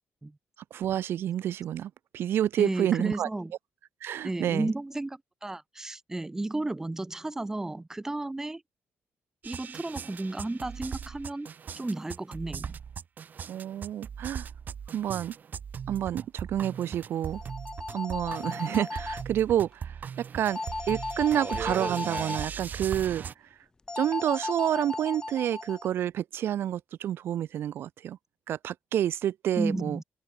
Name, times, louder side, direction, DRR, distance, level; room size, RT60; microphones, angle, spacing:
voice 1, 0.7-3.3 4.0-4.7 13.5-14.5 14.9-15.3 15.9-17.4 17.9-20.0 20.3-20.6 20.9-23.2 24.0-28.2 28.5-30.0, right 11 dB, 65° right, 0.5 m, -29 dB
voice 2, 2.6-3.5 4.2-8.6 9.4-11.5 11.7-12.8 29.6-30.0, right 2 dB, 10° right, 1.0 m, -33 dB
sound 1, 9.4-23.3, right 7 dB, 45° right, 3.0 m, -39 dB
sound 2, 17.2-19.2 20.5-22.5 23.9-25.9, left 3 dB, 15° left, 0.5 m, -36 dB
cardioid pair, 125°, 4 cm